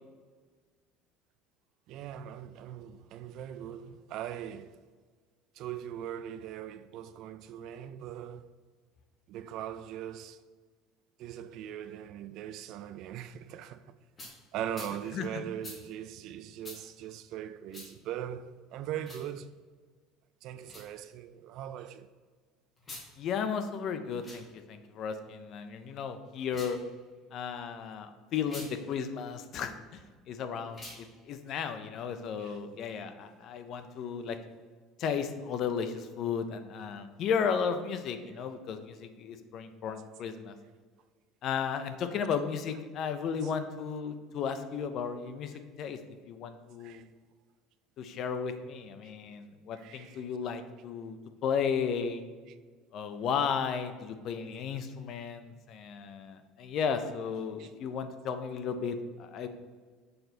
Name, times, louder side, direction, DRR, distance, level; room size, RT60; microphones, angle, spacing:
voice 1, 1.9-4.7 5.6-8.5 9.3-10.4 11.2-13.9 14.5-19.5 20.4-22.1 32.4-32.6 43.4-43.5 46.8-47.0 49.8-50.2 57.6-57.7, right 10 dB, 50° right, 0.3 m, -40 dB
sound 1, 14.2-14.3 14.7-14.9 15.6-15.8 16.6-16.8 17.7-17.9 19.0-19.3 20.6-20.9 22.8-23.1 24.1-24.4 26.4-26.8 28.4-28.7 30.7-31.0, left 2 dB, 20° left, 1.4 m, -45 dB
voice 2, 23.2-26.8 27.3-30.0 30.3-34.4 35.0-40.6 41.4-46.0 46.3-47.1 48.0-51.2 51.4-52.2 52.9-59.5, left 6 dB, 40° left, 0.5 m, -34 dB
6.7 x 4.0 x 4.2 m
cardioid pair, 170°, 0 cm